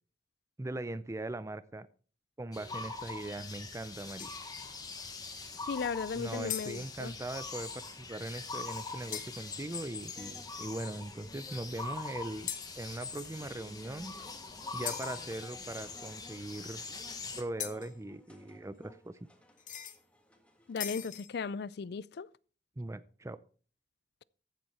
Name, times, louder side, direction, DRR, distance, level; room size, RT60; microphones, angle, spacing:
voice 1, 0.6-1.9 2.4-4.3 6.2-12.5 12.8-14.1 14.7-16.8 17.4-19.2 22.8-23.4, right 2 dB, 15° right, 0.5 m, -40 dB
sound 1, 2.5-17.4, left 4 dB, 25° left, 1.4 m, -43 dB
sound 2, 4.2-4.6 6.5-7.2 9.1-9.7 12.5-13.2 14.8-15.3 17.6-18.0 19.6-20.0 20.8-21.4, left 10 dB, 50° left, 1.1 m, -41 dB
sound 3, 5.0-21.2, equal, 5° left, 1.6 m, -59 dB
voice 2, 5.7-7.1 20.7-22.3, left 5 dB, 65° left, 0.4 m, -36 dB
14.5 x 7.6 x 4.3 m
head